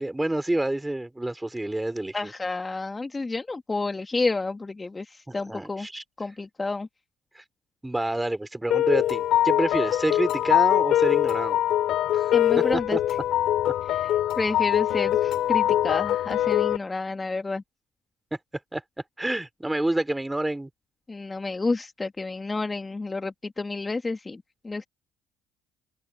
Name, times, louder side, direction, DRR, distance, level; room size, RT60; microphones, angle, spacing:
voice 1, 0.0-2.3 5.3-6.0 7.3-7.4 7.8-11.6 12.1-12.3 12.7-13.0 18.7-18.8 19.2-20.7, right 1 dB, 10° right, 4.7 m, -28 dB
voice 2, 2.1-5.9 6.2-6.9 12.3-13.0 13.9-17.6 21.1-24.9, left 3 dB, 20° left, 2.0 m, -30 dB
sound 1, 8.7-16.8, left 12 dB, 65° left, 3.1 m, -23 dB
open air
hypercardioid pair, 65°, 0 cm